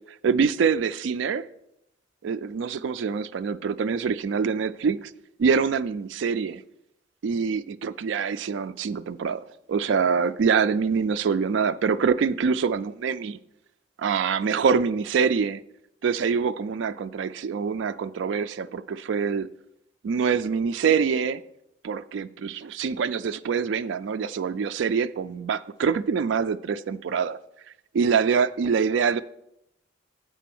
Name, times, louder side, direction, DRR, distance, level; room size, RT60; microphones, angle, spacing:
voice 1, 0.2-1.5 2.2-5.1 5.4-6.6 7.2-13.4 14.0-15.6 16.0-19.5 20.0-21.4 21.8-27.4 27.9-29.2, right 6 dB, 75° right, 0.3 m, -25 dB
7.5 x 4.5 x 6.0 m
head